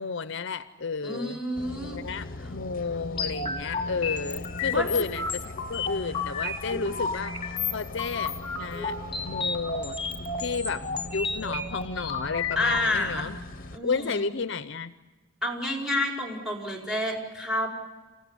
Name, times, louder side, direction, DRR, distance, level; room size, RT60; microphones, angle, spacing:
voice 1, 0.0-1.4 1.9-8.9 9.2-10.0 10.4-10.9 11.1-13.4 13.8-14.9, left 4 dB, 60° left, 12 dB, 0.7 m, -32 dB
voice 2, 1.0-2.0 2.4-2.5 4.7-4.9 12.5-13.3 13.7-14.2 15.4-17.7, left 1 dB, ahead, 0 dB, 4.9 m, -29 dB
sound 1, 1.5-13.8, left 2 dB, 45° left, 1.0 m, -40 dB
sound 2, 3.2-12.8, left 4 dB, 25° left, 2.4 m, -32 dB
27.5 x 16.0 x 9.9 m, 1.3 s
head